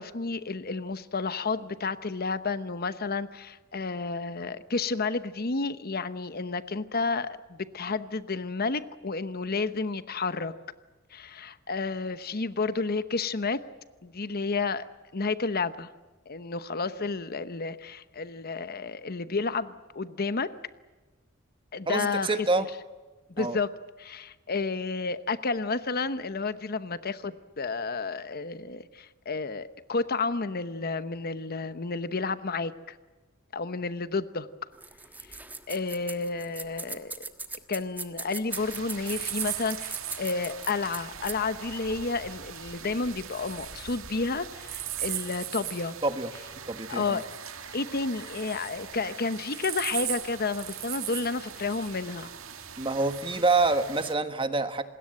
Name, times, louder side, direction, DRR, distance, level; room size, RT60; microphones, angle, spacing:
voice 1, 0.0-10.5 11.1-13.6 14.0-14.9 15.1-15.9 16.3-20.5 21.7-22.7 23.4-23.7 24.0-33.0 33.5-34.5 35.3-35.4 35.7-37.2 37.7-46.0 46.9-47.3 47.7-52.3, left 4 dB, 45° left, 13 dB, 0.9 m, -31 dB
voice 2, 21.9-22.7 23.4-23.6 46.0-46.3 46.7-47.2 52.8-54.8, right 3 dB, 25° right, 9 dB, 1.6 m, -26 dB
sound 1, 34.7-41.5, right 3 dB, 10° right, 1.4 m, -39 dB
sound 2, 38.5-54.1, right 11 dB, 70° right, 2.0 m, -39 dB
27.5 x 21.0 x 7.7 m, 1.3 s
head